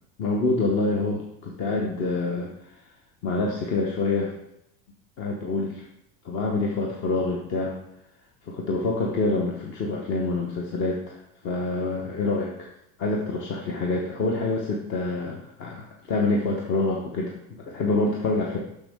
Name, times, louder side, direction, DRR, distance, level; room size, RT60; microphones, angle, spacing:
voice 1, 0.2-2.5 3.2-4.3 5.2-5.8 6.2-7.8 8.5-12.7 13.0-18.6, left 3 dB, 40° left, 0 dB, 1.0 m, -26 dB
6.8 x 6.5 x 3.6 m, 0.80 s
supercardioid pair, 140°, 30 cm